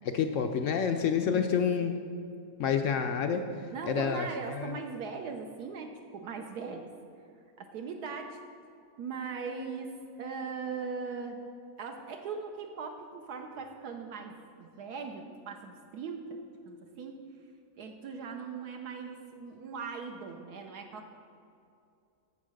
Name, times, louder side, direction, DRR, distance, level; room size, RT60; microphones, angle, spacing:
voice 1, 0.0-1.9 2.6-3.5 3.9-4.7, left 7 dB, 70° left, 6 dB, 0.7 m, -28 dB
voice 2, 1.2-1.5 3.7-6.9 7.6-8.4 9.0-11.4 11.8-17.3 17.8-21.1, right 5 dB, 75° right, 3 dB, 1.2 m, -40 dB
8.5 x 7.2 x 6.4 m, 2.5 s
omnidirectional pair, 1.8 m